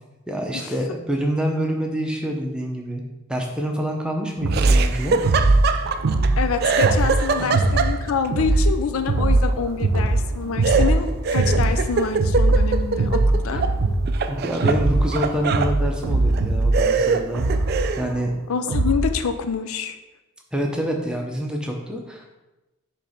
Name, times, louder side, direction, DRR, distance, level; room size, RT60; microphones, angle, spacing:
voice 1, 0.3-3.0 3.3-5.2 7.4-7.5 13.5-13.6 14.3-17.4 18.0-18.3 20.5-22.4, equal, 5° right, 1 dB, 0.7 m, -26 dB
sound 1, 4.4-19.2, right 2 dB, 90° right, 0.6 m, -21 dB
Laughter, 4.5-6.3 6.6-8.3 10.6-13.8 14.1-15.7 16.3-16.4 16.7-18.1, right 5 dB, 45° right, 0.3 m, -24 dB
voice 2, 6.4-13.6 18.5-20.0, left 6 dB, 85° left, 8 dB, 0.4 m, -26 dB
6.7 x 3.3 x 5.0 m, 1.0 s
head